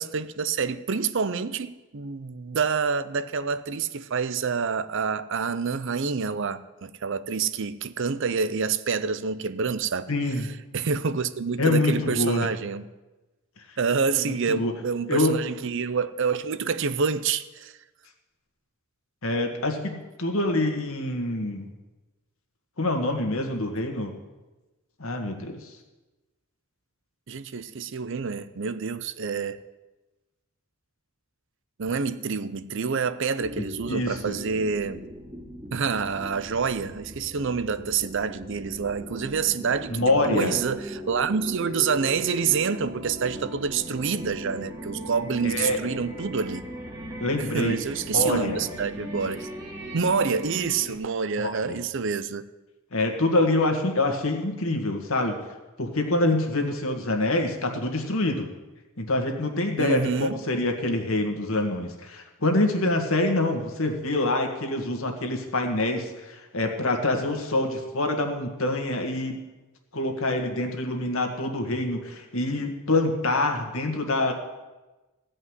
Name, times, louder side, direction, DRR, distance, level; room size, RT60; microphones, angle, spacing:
voice 1, 0.0-10.1 10.7-12.9 13.8-17.8 27.3-29.6 31.8-35.0 35.7-46.6 47.4-49.5 49.9-52.5 59.8-60.4, right 5 dB, 55° right, 0.6 m, -27 dB
voice 2, 10.1-10.5 11.6-12.5 14.2-14.7 15.1-15.4 19.2-21.7 22.8-24.1 25.0-25.8 33.9-34.4 39.9-40.6 45.4-45.8 47.2-47.8 48.1-48.6 51.4-51.8 52.9-55.4 55.8-58.5 59.0-69.4 69.9-74.3, left 2 dB, 70° left, 1.9 m, -26 dB
sound 1, 33.4-50.9, equal, 15° right, 2.0 m, -39 dB
16.0 x 5.4 x 9.6 m
head